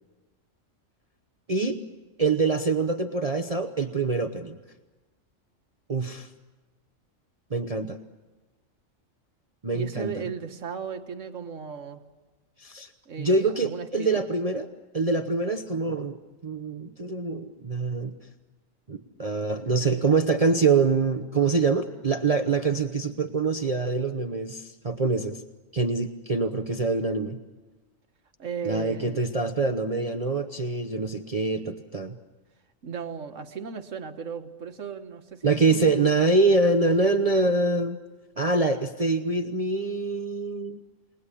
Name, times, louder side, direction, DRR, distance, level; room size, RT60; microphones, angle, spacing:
voice 1, 2.2-4.6 5.9-6.3 7.5-8.0 9.6-10.1 12.6-12.9 13.2-14.7 14.9-16.2 16.4-18.1 18.9-25.4 25.7-27.4 28.6-32.2 35.4-38.0 38.4-40.8, right 3 dB, 30° right, 6 dB, 0.9 m, -25 dB
voice 2, 9.7-12.0 13.1-14.2 28.4-29.3 32.8-35.4 35.7-36.0, right 6 dB, 70° right, 7 dB, 1.7 m, -36 dB
29.5 x 19.5 x 10.0 m, 1.2 s
omnidirectional pair, 1.4 m